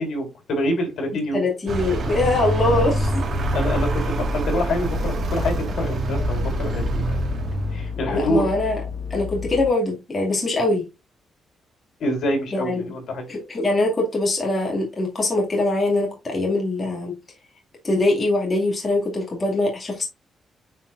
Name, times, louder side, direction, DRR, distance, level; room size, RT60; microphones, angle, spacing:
voice 1, 0.0-1.4 3.5-7.2 7.7-8.5 12.0-13.2, left 1 dB, 60° left, 2 dB, 3.9 m, -26 dB
voice 2, 1.3-3.3 8.1-8.8 9.1-10.8 12.5-12.8 13.3-17.1 17.8-20.1, left 2 dB, 25° left, -1 dB, 2.3 m, -22 dB
Vehicle, 1.7-8.0, right 1 dB, 45° right, 1.7 m, -25 dB
sound 1, 4.8-9.7, left 6 dB, 45° left, 1.8 m, -32 dB
8.9 x 4.6 x 2.5 m, 0.24 s
cardioid pair, 160°, 0 cm